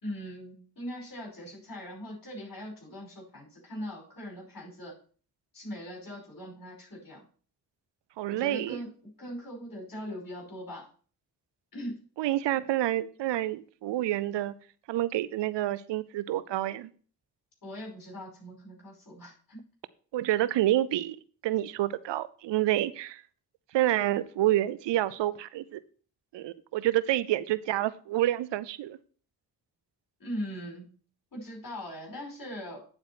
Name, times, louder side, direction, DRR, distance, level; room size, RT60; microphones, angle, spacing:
voice 1, 0.0-5.0 5.5-7.2 8.3-10.9 11.7-12.0 17.6-19.6 30.2-30.9 31.3-32.9, equal, 55° left, 0 dB, 5.0 m, -40 dB
voice 2, 8.2-8.8 12.2-14.6 14.9-16.9 20.1-21.2 21.4-23.2 23.7-25.8 26.3-29.0, right 14 dB, 90° right, 17 dB, 0.6 m, -28 dB
9.0 x 4.4 x 5.6 m, 0.42 s
cardioid pair, 45°, 42 cm